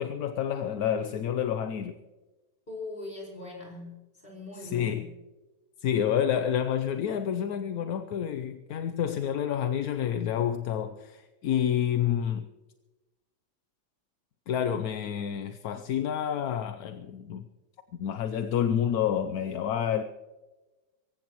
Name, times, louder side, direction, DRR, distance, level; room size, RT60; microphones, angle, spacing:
voice 1, 0.0-1.9 4.6-5.1 5.8-12.5 14.5-17.4 17.9-20.0, left 9 dB, 65° left, 1.0 m, -29 dB
voice 2, 2.7-5.2, left 2 dB, 30° left, 5.0 m, -41 dB
24.5 x 15.0 x 3.0 m
omnidirectional pair, 2.0 m